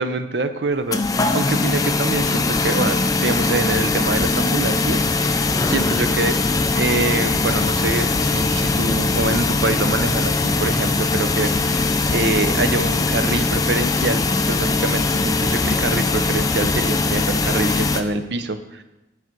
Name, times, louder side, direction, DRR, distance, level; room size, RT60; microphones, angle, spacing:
voice 1, 0.0-5.3 5.7-6.4 6.8-18.8, right 3 dB, 65° right, 10 dB, 0.6 m, -25 dB
sound 1, 0.9-18.0, left 3 dB, 20° left, 0.4 m, -21 dB
9.3 x 4.9 x 5.9 m, 0.97 s
head